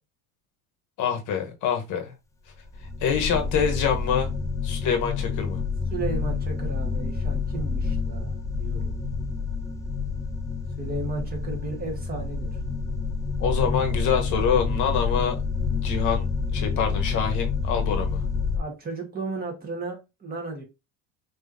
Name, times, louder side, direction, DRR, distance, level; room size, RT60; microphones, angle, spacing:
voice 1, 1.0-2.1 3.0-4.3 4.6-5.6 13.4-15.4 15.8-16.2 16.5-18.2, left 7 dB, 50° left, 1.2 m, -25 dB
sound 1, 2.7-18.6, left 4 dB, 10° left, 0.3 m, -28 dB
voice 2, 5.9-8.9 10.8-12.6 18.5-20.6, right 3 dB, 25° right, 1.6 m, -34 dB
5.3 x 3.1 x 2.7 m
supercardioid pair, 125°, 39 cm